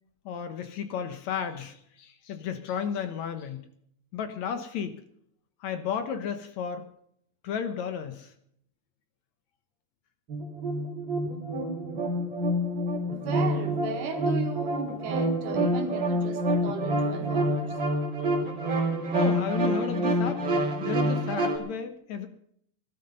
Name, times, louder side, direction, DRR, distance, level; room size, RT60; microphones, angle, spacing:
voice 1, 0.3-3.7 4.1-5.0 5.6-6.9 7.4-8.3 18.2-18.3 19.1-20.5 20.8-22.3, left 7 dB, 65° left, 9 dB, 2.2 m, -33 dB
sound 1, 10.3-21.6, right 1 dB, 35° right, 3.8 m, -27 dB
voice 2, 13.1-17.8, right 6 dB, 75° right, 5 dB, 3.3 m, -36 dB
17.5 x 12.5 x 5.5 m, 0.69 s
omnidirectional pair, 3.8 m